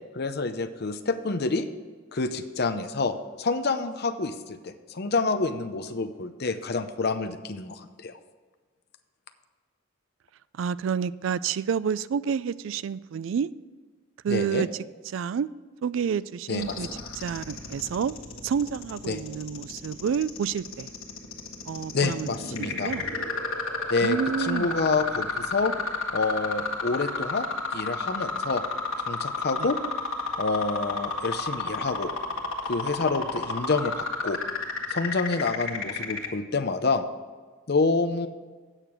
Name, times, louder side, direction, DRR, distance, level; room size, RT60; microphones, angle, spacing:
voice 1, 0.1-1.7 2.1-8.1 14.3-14.7 16.5-16.8 19.1-19.2 21.9-22.9 23.9-25.7 26.1-27.5 27.7-28.6 29.1-29.8 30.4-32.1 32.6-34.4 34.9-37.0 37.7-38.3, left 3 dB, 50° left, 0.7 m, -28 dB
voice 2, 10.5-13.5 14.2-14.7 15.1-15.5 15.8-16.9 17.2-18.1 18.4-20.9 21.7-22.3 22.6-23.0 24.0-24.9 29.6-29.7, right 7 dB, 65° right, 0.3 m, -29 dB
sound 1, 16.6-36.3, left 4 dB, 85° left, 1.4 m, -31 dB
8.9 x 6.6 x 6.0 m
head